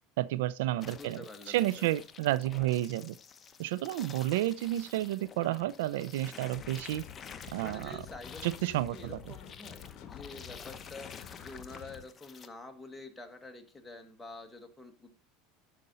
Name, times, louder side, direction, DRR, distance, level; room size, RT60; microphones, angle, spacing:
voice 1, 0.2-3.2 3.6-7.0 7.5-8.0 8.4-9.2, right 15 dB, 80° right, 0.4 m, -31 dB
sound 1, 0.8-12.5, left 6 dB, 30° left, 0.8 m, -50 dB
voice 2, 0.9-1.9 7.6-15.1, left 2 dB, 10° left, 1.6 m, -48 dB
sound 2, 6.5-12.0, left 9 dB, 55° left, 1.1 m, -49 dB
12.0 x 5.2 x 4.1 m
supercardioid pair, 105°, 0 cm